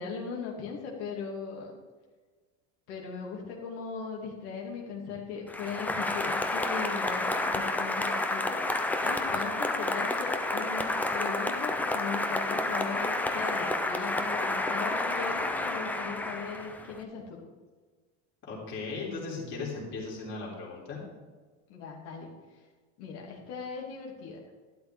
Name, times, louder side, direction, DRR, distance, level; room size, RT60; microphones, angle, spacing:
voice 1, 0.0-1.7 2.9-8.6 9.0-17.4 21.7-22.3 23.0-24.4, left 5 dB, 80° left, -1 dB, 2.5 m, -38 dB
Applause, 5.5-17.0, left 2 dB, 5° left, 0.3 m, -30 dB
voice 2, 18.4-21.0, left 3 dB, 35° left, -4 dB, 3.4 m, -37 dB
12.5 x 12.0 x 3.6 m, 1.4 s
cardioid pair, 175°, 34 cm